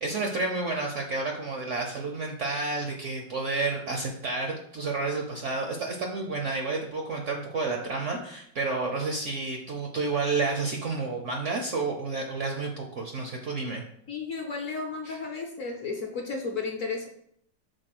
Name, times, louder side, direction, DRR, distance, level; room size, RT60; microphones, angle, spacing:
voice 1, 0.0-13.8 15.0-15.2, right 3 dB, 55° right, 2 dB, 0.8 m, -30 dB
voice 2, 14.1-17.1, left 4 dB, 55° left, 2 dB, 1.0 m, -33 dB
5.3 x 4.0 x 5.9 m, 0.68 s
omnidirectional pair, 2.0 m